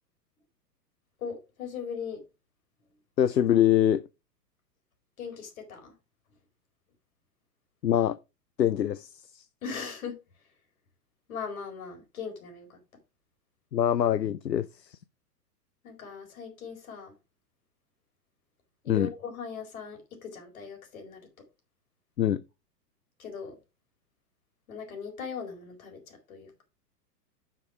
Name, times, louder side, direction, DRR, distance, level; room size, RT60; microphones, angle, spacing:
voice 1, 1.2-2.2 5.2-5.9 9.6-10.2 11.3-12.8 15.8-17.1 18.8-21.2 23.2-23.5 24.7-26.6, left 6 dB, 55° left, 4.5 m, -39 dB
voice 2, 3.2-4.0 7.8-8.2 8.6-9.4 13.7-15.0 18.9-19.1 22.2-22.4, left 10 dB, 80° left, 0.6 m, -24 dB
9.8 x 5.9 x 4.8 m
figure-of-eight pair, 110°, 49 cm